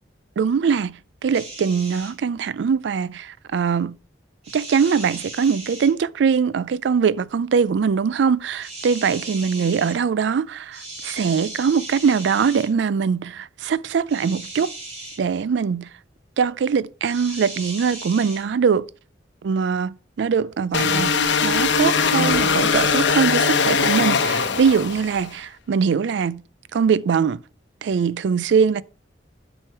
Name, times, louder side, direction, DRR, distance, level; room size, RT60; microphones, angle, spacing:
voice 1, 0.4-4.0 4.5-14.7 15.2-15.9 16.4-18.9 19.4-26.4 26.7-27.4 27.8-28.8, right 6 dB, 75° right, 0.4 m, -22 dB
sound 1, 1.3-2.1 4.4-5.9 8.6-10.0 10.7-12.7 14.1-15.2 17.0-18.4, right 2 dB, 35° right, 3.1 m, -37 dB
sound 2, 20.7-25.3, left 5 dB, 80° left, 0.9 m, -20 dB
7.5 x 6.3 x 4.5 m
head